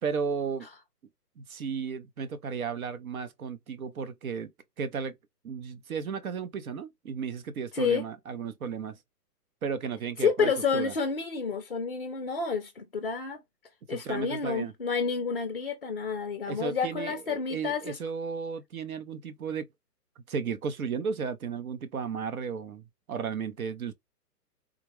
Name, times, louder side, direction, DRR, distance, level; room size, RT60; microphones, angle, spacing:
voice 1, 0.0-0.7 1.4-4.5 4.8-5.1 5.4-9.0 9.6-10.9 13.9-14.7 16.5-19.7 20.3-23.9, right 6 dB, 60° right, 0.7 m, -34 dB
voice 2, 7.7-8.1 10.2-13.4 13.9-18.0, left 5 dB, 40° left, 0.4 m, -29 dB
3.6 x 2.1 x 3.0 m
hypercardioid pair, 165°, 48 cm